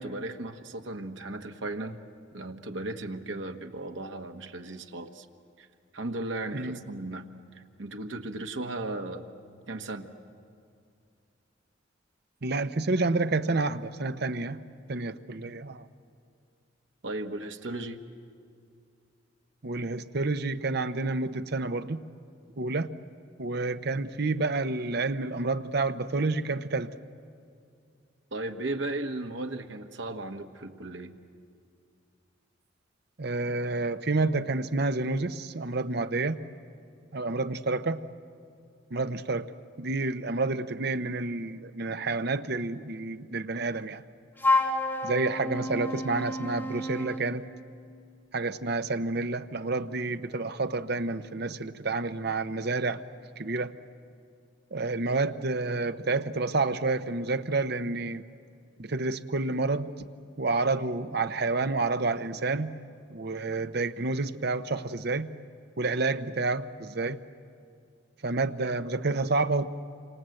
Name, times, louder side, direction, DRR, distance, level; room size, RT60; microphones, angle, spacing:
voice 1, 0.0-2.0 2.3-5.3 5.6-5.7 5.9-7.3 7.5-9.3 9.7-10.1 17.0-18.0 28.3-31.1, right 2 dB, 80° right, 5 dB, 1.4 m, -36 dB
voice 2, 12.4-14.6 14.9-15.8 19.6-22.0 22.6-22.9 23.4-26.9 33.2-36.4 37.1-38.0 38.9-39.5 39.8-44.0 45.0-47.5 48.3-53.0 53.4-53.8 54.7-58.2 58.8-59.9 60.4-62.7 63.1-65.3 65.8-67.2 68.2-69.7, right 3 dB, 60° right, 10 dB, 0.9 m, -29 dB
Wind instrument woodwind instrument, 44.4-47.3, left 2 dB, 10° left, 1.8 m, -29 dB
28.0 x 26.0 x 7.8 m, 2.4 s
head